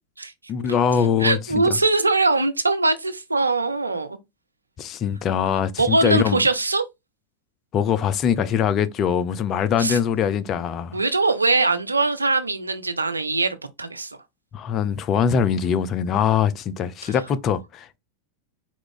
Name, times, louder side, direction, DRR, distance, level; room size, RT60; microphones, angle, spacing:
voice 1, 0.5-1.8 4.8-6.4 7.7-11.0 14.5-18.0, left 8 dB, 30° left, 0.4 m, -22 dB
voice 2, 1.2-4.2 5.8-6.9 9.8-10.0 10.9-14.1, right 3 dB, 80° right, 0.5 m, -22 dB
4.4 x 2.4 x 3.7 m
figure-of-eight pair, 90°, 0 cm